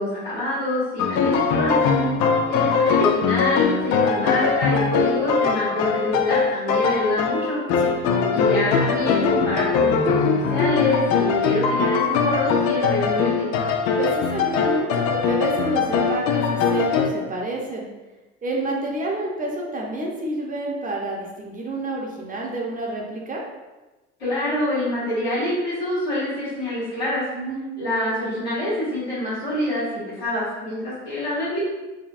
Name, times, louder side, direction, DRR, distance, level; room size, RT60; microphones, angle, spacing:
voice 1, 0.0-1.8 2.5-7.6 8.3-13.5 24.2-27.2 27.8-31.6, left 1 dB, 80° left, -14 dB, 1.5 m, -26 dB
sound 1, 1.0-17.1, left 5 dB, 55° left, 0.4 m, -21 dB
voice 2, 14.0-17.9 18.4-23.4 27.3-27.6, right 2 dB, 25° right, -1 dB, 0.8 m, -29 dB
3.4 x 2.2 x 2.5 m, 1.1 s
hypercardioid pair, 65°, 33 cm